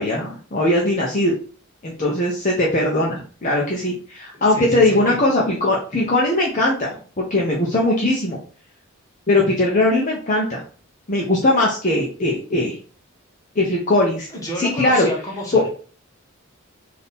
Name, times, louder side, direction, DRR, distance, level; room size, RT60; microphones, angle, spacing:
voice 1, 0.0-1.3 1.8-6.9 7.2-8.4 9.3-10.6 11.1-12.8 13.6-14.3 14.6-15.1 15.5-15.6, left 1 dB, 40° left, -3 dB, 0.8 m, -19 dB
voice 2, 4.3-5.2 14.3-15.7, equal, 15° left, -3 dB, 1.3 m, -30 dB
3.5 x 2.8 x 4.2 m, 0.40 s
head